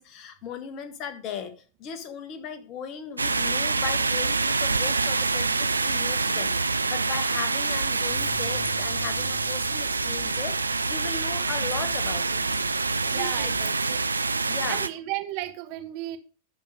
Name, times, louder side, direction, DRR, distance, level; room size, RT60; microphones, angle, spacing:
voice 1, 0.0-1.5 1.8-12.6 13.0-13.7 14.4-14.8, left 7 dB, 40° left, 1.4 m, -37 dB
sound 1, 3.2-14.9, right 4 dB, 80° right, 0.4 m, -26 dB
sound 2, 8.1-13.6, left 5 dB, 70° left, 1.9 m, -44 dB
voice 2, 13.0-14.0 14.4-16.2, right 16 dB, 45° right, 1.2 m, -34 dB
11.0 x 4.7 x 4.9 m
figure-of-eight pair, 90°, 0 cm